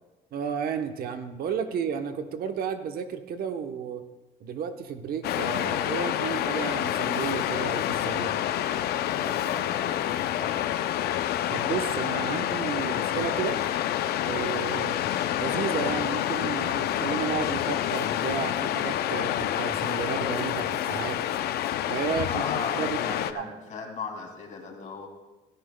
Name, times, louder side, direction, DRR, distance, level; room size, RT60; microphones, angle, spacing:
voice 1, 0.3-4.0 4.4-8.4 11.5-13.6 14.2-15.0 15.4-21.2 21.9-22.4 22.8-23.0 23.3-23.5, right 7 dB, 60° right, 7 dB, 1.0 m, -32 dB
Waves surf, 5.2-23.3, left 12 dB, 70° left, 0.5 m, -28 dB
voice 2, 9.1-10.8 22.2-25.1, left 5 dB, 45° left, 2 dB, 2.4 m, -37 dB
16.0 x 14.0 x 2.2 m, 1.1 s
cardioid pair, 110°, 17 cm